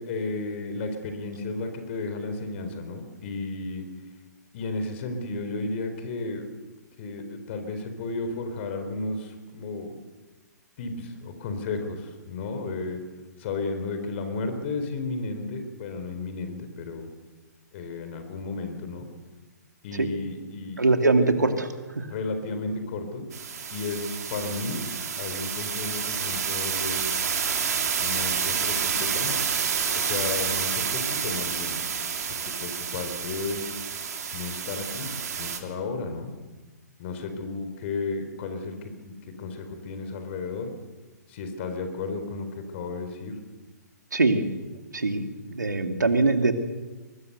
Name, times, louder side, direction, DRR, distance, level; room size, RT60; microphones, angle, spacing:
voice 1, 0.0-3.9 4.5-6.5 7.0-9.9 10.8-13.0 13.4-17.1 17.7-19.1 19.8-20.8 22.1-23.3 23.7-24.9 25.2-27.1 28.0-29.5 29.9-31.8 32.3-33.7 34.3-36.3 37.0-40.7 41.3-43.4, left 3 dB, 40° left, 7 dB, 4.2 m, -33 dB
voice 2, 20.8-22.1 44.1-44.4 44.9-46.5, right 3 dB, 85° right, 7 dB, 2.4 m, -23 dB
sound 1, 23.3-35.6, right 6 dB, 65° right, 2.9 m, -29 dB
23.0 x 20.0 x 6.9 m, 1.2 s
figure-of-eight pair, 130°, 9 cm